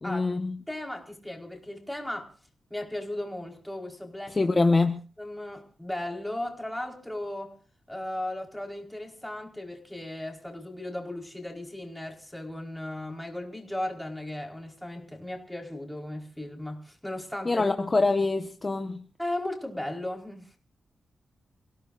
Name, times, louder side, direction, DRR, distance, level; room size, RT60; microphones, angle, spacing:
voice 1, 0.0-0.6 4.3-5.0 17.4-19.0, left 3 dB, 30° left, 1.4 m, -25 dB
voice 2, 0.7-2.3 2.7-4.5 5.2-7.6 7.9-17.7 19.2-20.6, left 1 dB, 5° left, 4.6 m, -36 dB
29.0 x 17.0 x 2.6 m
cardioid pair, 95°, 0 cm